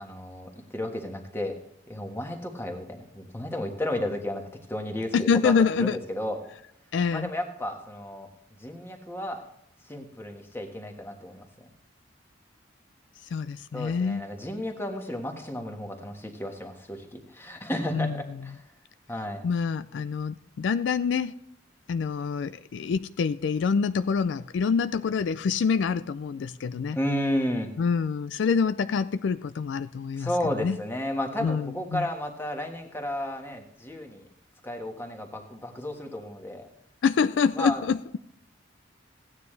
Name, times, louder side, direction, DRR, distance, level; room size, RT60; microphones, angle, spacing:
voice 1, 0.0-1.5 1.9-6.4 7.1-8.3 8.6-9.5 9.8-11.4 13.7-18.6 19.1-19.4 26.9-27.7 30.2-34.3 34.6-36.7 37.6-37.8, left 1 dB, 10° left, 1.4 m, -33 dB
voice 2, 5.1-6.0 6.9-7.3 13.3-14.3 17.9-18.2 19.4-21.3 21.9-27.0 27.8-30.3 30.6-30.8 31.4-32.1 37.0-38.0, left 5 dB, 70° left, 0.3 m, -26 dB
15.5 x 9.5 x 3.3 m
head